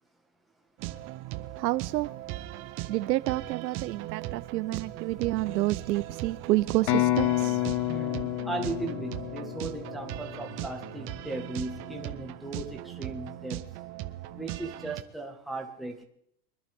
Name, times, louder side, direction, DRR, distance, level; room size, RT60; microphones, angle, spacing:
sound 1, 0.8-15.0, right 15 dB, 25° right, 0.6 m, -39 dB
voice 1, 1.6-2.1 2.9-7.6, right 16 dB, 85° right, 0.8 m, -29 dB
sound 2, 6.9-10.6, left 16 dB, 45° left, 1.0 m, -29 dB
voice 2, 7.9-13.6 14.3-16.0, right 2 dB, ahead, 1.6 m, -37 dB
24.0 x 11.0 x 3.6 m
supercardioid pair, 150°, 49 cm